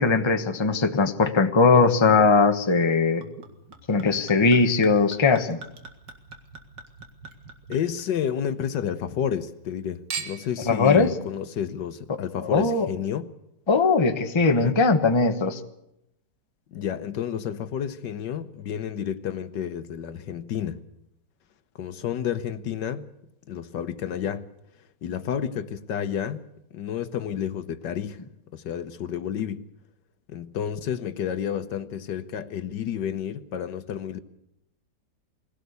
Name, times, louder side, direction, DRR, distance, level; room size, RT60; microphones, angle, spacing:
voice 1, 0.0-3.2 3.9-5.6 10.7-11.1 12.5-12.9 13.7-15.6, left 4 dB, 20° left, 1.1 m, -20 dB
Chink clink / Liquid, 3.2-8.7 9.1-9.7 10.1-10.6 11.4-11.5, right 5 dB, 85° right, 2.7 m, -42 dB
voice 2, 7.7-13.3 14.4-14.8 16.7-20.8 21.8-23.0 23.5-24.5 25.0-26.4 26.7-28.2 28.5-29.6 30.3-34.2, left 9 dB, 75° left, 1.6 m, -30 dB
21.5 x 17.0 x 8.2 m
omnidirectional pair, 1.9 m